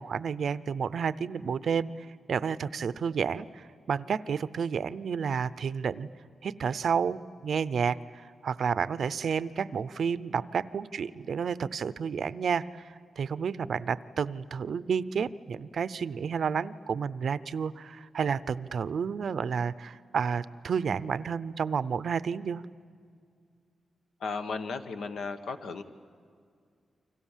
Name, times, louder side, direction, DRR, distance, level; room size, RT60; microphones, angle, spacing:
voice 1, 0.0-6.1 6.4-8.0 8.4-12.8 13.2-22.6, right 6 dB, 60° right, 16 dB, 0.6 m, -30 dB
voice 2, 24.2-25.8, left 4 dB, 80° left, 8 dB, 1.3 m, -35 dB
29.5 x 25.0 x 7.4 m, 2.2 s
wide cardioid pair, 155°, 0 cm